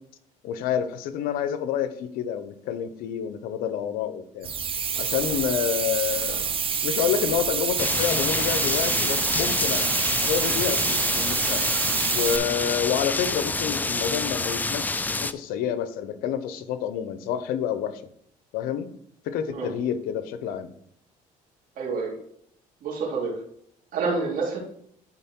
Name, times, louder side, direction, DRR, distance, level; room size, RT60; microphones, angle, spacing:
voice 1, 0.4-4.5 5.0-9.9 10.2-11.7 12.1-18.0 18.5-18.9 19.2-20.7, left 9 dB, 85° left, 12 dB, 0.8 m, -28 dB
sound 1, 4.4-12.4, right 7 dB, 40° right, 0.8 m, -27 dB
sound 2, 7.8-15.3, left 3 dB, 10° left, 0.4 m, -27 dB
voice 2, 21.8-22.1 22.8-23.3 23.9-24.6, right 4 dB, 70° right, -3 dB, 3.0 m, -27 dB
11.0 x 3.9 x 4.5 m, 0.67 s
cardioid pair, 110°, 15 cm